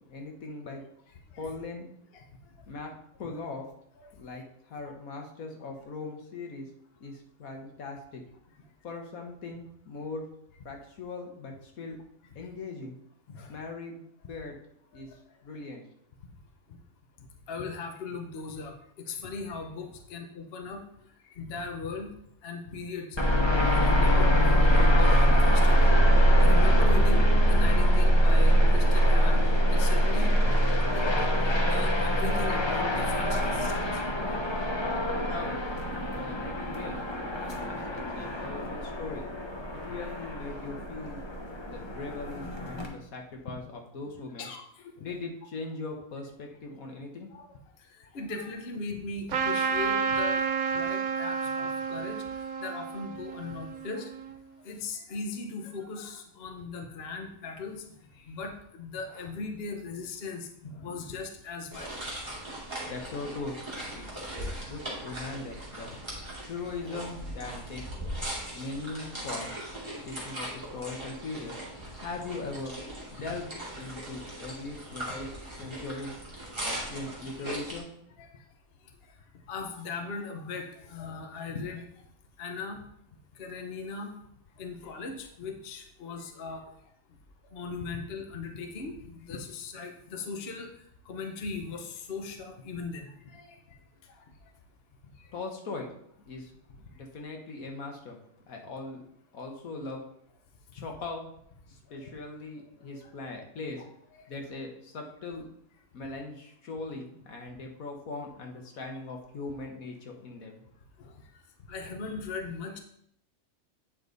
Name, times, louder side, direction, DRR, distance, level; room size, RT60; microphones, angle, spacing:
voice 1, 0.1-0.8 1.4-1.9 2.7-2.9 3.2-3.7 4.2-4.4 4.7-6.7 7.0-8.2 8.8-10.2 10.6-12.0 12.3-13.0 13.5-14.6 14.9-15.1 15.4-15.8 35.3-35.6 36.1-37.1 37.3-39.2 39.7-41.2 41.6-44.5 45.0-47.3 62.9-63.6 63.9-65.9 66.5-67.8 68.5-69.5 69.9-71.5 72.0-72.7 73.1-75.3 75.6-76.1 76.6-77.9 95.3-95.9 96.2-96.5 96.9-98.2 98.5-99.0 99.3-100.0 100.7-101.3 101.7-103.8 104.3-105.5 105.9-110.6, left 3 dB, 75° left, 2 dB, 1.7 m, -40 dB
voice 2, 13.3-13.6 14.9-15.0 16.7-16.8 17.5-20.8 21.3-22.1 22.4-23.2 23.5-26.0 26.2-27.2 27.5-29.4 29.7-30.3 30.6-33.8 34.7-35.4 37.7-37.8 38.6-39.1 44.3-45.1 47.3-47.4 48.0-50.4 50.7-52.2 52.6-54.1 54.6-57.8 58.1-62.0 67.4-67.5 76.6-77.1 78.2-78.4 79.5-81.9 82.4-82.8 83.4-84.1 84.6-86.6 87.5-90.7 91.1-93.8 95.2-95.3 102.0-102.1 102.9-103.4 103.7-103.8 104.1-104.3 111.0-111.1 111.7-112.8, left 4 dB, 50° left, 4 dB, 1.1 m, -39 dB
sound 1, 23.2-42.9, equal, 20° left, 0.9 m, -23 dB
Trumpet, 49.3-54.3, right 6 dB, 80° right, 1.2 m, -30 dB
sound 2, 61.7-77.8, right 1 dB, 20° right, 2.3 m, -39 dB
8.9 x 5.1 x 4.0 m, 0.71 s
omnidirectional pair, 1.5 m